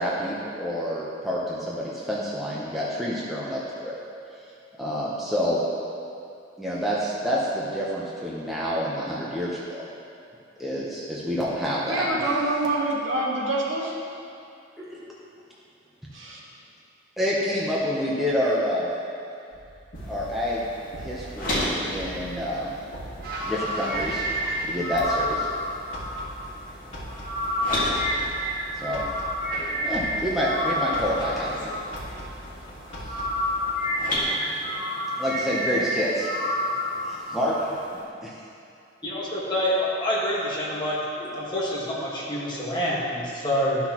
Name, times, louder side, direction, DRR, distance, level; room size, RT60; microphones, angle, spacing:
voice 1, 0.0-3.9 4.8-5.6 6.6-9.8 10.6-12.1 14.8-15.0 17.2-18.9 20.1-20.7 21.0-22.7 23.4-24.2 24.6-25.5 28.8-29.0 29.8-31.7 33.0-33.2 34.0-34.4 35.2-36.3 37.0-37.7 38.2-38.3 41.2-41.3, equal, ahead, -7 dB, 0.8 m, -28 dB
voice 2, 11.9-13.9 16.1-16.4, right 2 dB, 75° right, -4 dB, 1.4 m, -26 dB
sound 1, 19.5-33.9, equal, 60° left, 1.9 m, -41 dB
sound 2, 19.9-38.0, left 1 dB, 45° left, 1.8 m, -36 dB
sound 3, 23.2-32.5 32.8-37.8, equal, 50° right, 1.3 m, -29 dB
voice 3, 39.0-41.0 41.3-43.8, equal, 20° left, -6 dB, 1.5 m, -27 dB
12.5 x 6.1 x 3.0 m, 2.6 s
head